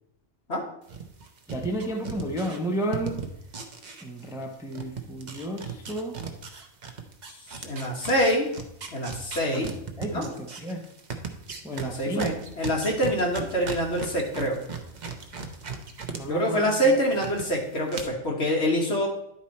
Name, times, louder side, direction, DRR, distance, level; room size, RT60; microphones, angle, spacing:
sound 1, 0.9-4.5 4.7-16.2 16.5-17.4 17.9-18.0, right 5 dB, 40° right, 0.8 m, -37 dB
voice 1, 1.5-3.2 4.0-6.2 9.4-10.9 11.6-12.3 16.1-16.7, right 1 dB, 5° right, 2 dB, 0.6 m, -32 dB
voice 2, 7.6-8.5 8.9-9.8 10.1-10.3 11.7-14.6 16.3-19.1, equal, 55° left, -1 dB, 1.8 m, -25 dB
10.5 x 4.4 x 4.2 m, 0.78 s
omnidirectional pair, 1.3 m